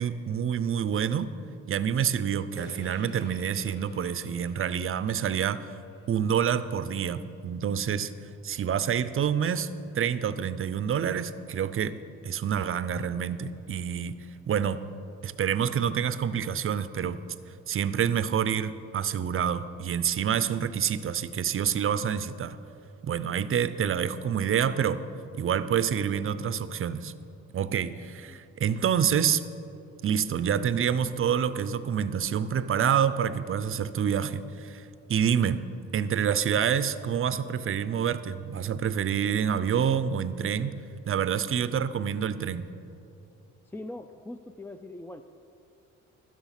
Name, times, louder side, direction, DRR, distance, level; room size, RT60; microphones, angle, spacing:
voice 1, 0.0-1.3 1.7-5.8 6.1-8.1 8.4-12.0 12.2-14.8 15.2-17.2 17.7-22.6 23.0-25.0 25.3-27.1 27.5-29.4 30.0-35.7 35.9-40.8 41.1-42.7, right 8 dB, 45° right, 14 dB, 0.6 m, -27 dB
sound 1, 2.6-7.0, left 2 dB, 40° left, 1.2 m, -52 dB
voice 2, 43.6-45.2, left 1 dB, 5° left, 8 dB, 0.4 m, -41 dB
12.5 x 9.7 x 5.8 m, 2.8 s
cardioid pair, 90°, 30 cm